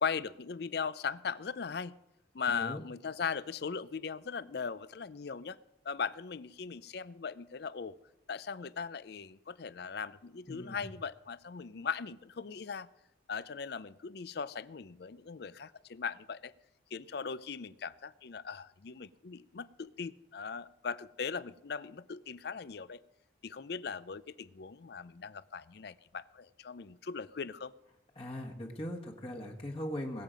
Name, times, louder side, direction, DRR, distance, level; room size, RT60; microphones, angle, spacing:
voice 1, 0.0-2.0 2.3-5.6 5.8-8.0 8.3-12.9 13.3-16.5 16.9-23.0 23.4-27.7, left 6 dB, 60° left, 17 dB, 0.5 m, -39 dB
voice 2, 10.5-10.9 28.1-30.2, left 1 dB, 30° left, 0 dB, 1.4 m, -40 dB
21.0 x 7.5 x 5.2 m, 0.87 s
head